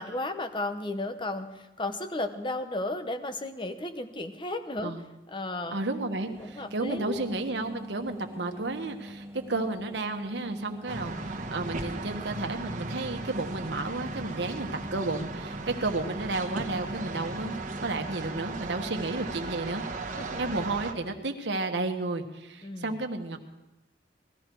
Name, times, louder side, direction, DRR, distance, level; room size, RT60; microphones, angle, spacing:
voice 1, 0.0-4.9 5.3-5.8 6.4-7.2 20.2-20.4 22.6-23.0, left 2 dB, 25° left, 8 dB, 0.9 m, -34 dB
voice 2, 5.7-19.8 20.4-23.4, right 2 dB, 75° right, 5 dB, 1.3 m, -32 dB
sound 1, 6.0-19.6, equal, 15° right, 0.6 m, -44 dB
sound 2, 10.9-20.9, right 3 dB, 45° right, 1.1 m, -37 dB
19.0 x 13.0 x 4.6 m, 0.97 s
head